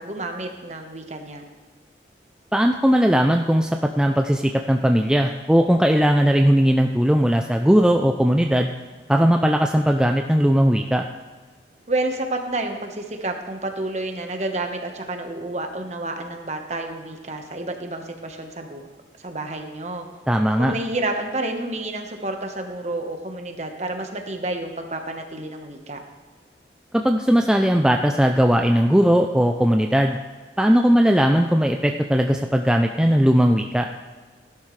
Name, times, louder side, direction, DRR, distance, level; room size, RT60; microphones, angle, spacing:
voice 1, 0.0-1.5 11.9-18.9 19.2-20.0 20.6-26.0, right 2 dB, 40° right, 4 dB, 1.2 m, -30 dB
voice 2, 2.5-3.7 4.0-8.7 9.1-11.1 20.3-20.7 26.9-30.2 30.6-33.9, equal, 5° right, 3 dB, 0.4 m, -18 dB
16.5 x 11.5 x 3.3 m, 1.4 s
head